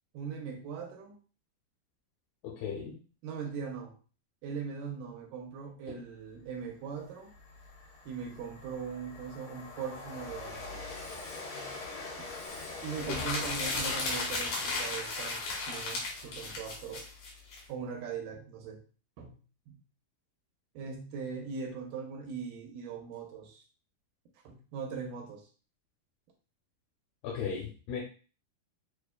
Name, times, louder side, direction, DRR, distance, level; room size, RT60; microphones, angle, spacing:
voice 1, 0.1-1.2 3.2-3.9 4.4-7.3 8.1-10.8 12.2-12.3 12.8-17.1 17.7-18.8 19.2-19.4 19.7-19.8 20.8-23.7 24.4-25.5, right 6 dB, 80° right, 3 dB, 2.1 m, -40 dB
voice 2, 2.4-2.9 5.9-6.0 27.2-28.0, left 6 dB, 85° left, -4 dB, 2.7 m, -36 dB
Train, 6.4-6.5 6.9-17.3, left 3 dB, 50° left, 1.8 m, -45 dB
sound 1, 12.9-17.6, left 3 dB, 65° left, 2.4 m, -34 dB
6.8 x 2.4 x 2.2 m, 0.37 s
omnidirectional pair, 4.1 m